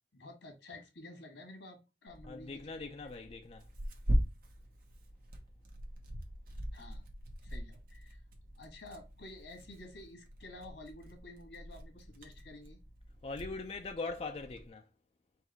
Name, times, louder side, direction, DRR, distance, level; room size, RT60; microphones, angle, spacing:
voice 1, 0.1-2.6 6.7-7.0 7.4-8.2 8.6-12.8, left 2 dB, 85° left, 1.8 m, -51 dB
Tearing, 2.1-14.7, equal, 55° right, 1.2 m, -41 dB
voice 2, 2.3-3.6 13.2-14.9, left 3 dB, 35° left, 0.4 m, -41 dB
4.7 x 2.6 x 4.3 m
head